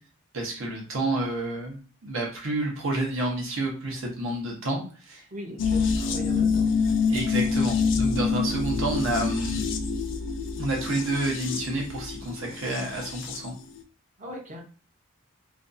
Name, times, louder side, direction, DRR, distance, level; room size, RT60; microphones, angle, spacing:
voice 1, 0.3-5.2 7.1-9.7 10.6-13.5, right 2 dB, 70° right, 0 dB, 0.8 m, -29 dB
voice 2, 5.3-6.7 14.2-14.6, equal, 35° right, 1 dB, 0.6 m, -39 dB
sound 1, 5.6-13.5 13.8-13.9, left 5 dB, 60° left, 0.3 m, -27 dB
2.5 x 2.3 x 2.5 m, 0.38 s
head